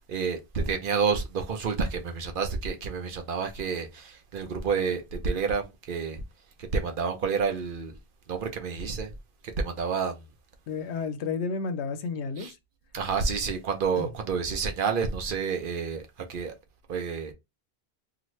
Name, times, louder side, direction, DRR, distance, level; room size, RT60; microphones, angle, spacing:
voice 1, 0.1-6.2 6.6-7.9 8.3-9.1 9.4-10.3 12.4-12.5 12.9-16.5 16.9-17.3, right 5 dB, 60° right, 0.7 m, -29 dB
voice 2, 10.7-12.6 14.0-14.1, left 4 dB, 90° left, 0.9 m, -31 dB
2.8 x 2.5 x 3.0 m
omnidirectional pair, 1.1 m